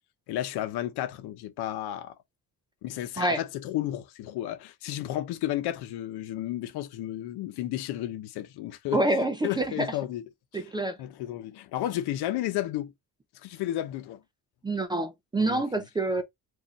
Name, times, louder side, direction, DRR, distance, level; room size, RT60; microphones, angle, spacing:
voice 1, 0.3-2.1 2.8-9.0 9.4-10.3 10.5-10.7 11.0-12.9 13.4-14.2 15.4-15.6, left 13 dB, 85° left, 0.9 m, -32 dB
voice 2, 8.9-9.9 10.5-11.0 14.6-16.2, right 2 dB, 15° right, 0.3 m, -27 dB
4.8 x 2.6 x 3.0 m
cardioid pair, 175°, 38 cm